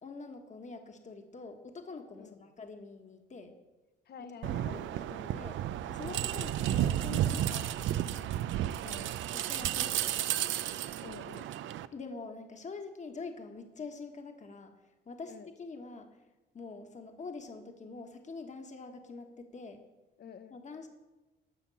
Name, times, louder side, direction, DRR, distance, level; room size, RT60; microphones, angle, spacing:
voice 1, 0.0-3.6 4.4-5.6 5.9-8.3 9.3-10.5 11.9-14.7 15.0-16.1 16.5-19.8 20.5-20.9, left 4 dB, 35° left, 5 dB, 1.4 m, -45 dB
voice 2, 4.1-5.1 8.8-9.1 11.0-11.5 15.3-15.5 20.2-20.6, left 6 dB, 55° left, 11 dB, 0.9 m, -49 dB
sound 1, 4.4-11.9, right 12 dB, 75° right, 0.5 m, -32 dB
12.0 x 5.7 x 7.1 m, 1.1 s
cardioid pair, 90°, 20 cm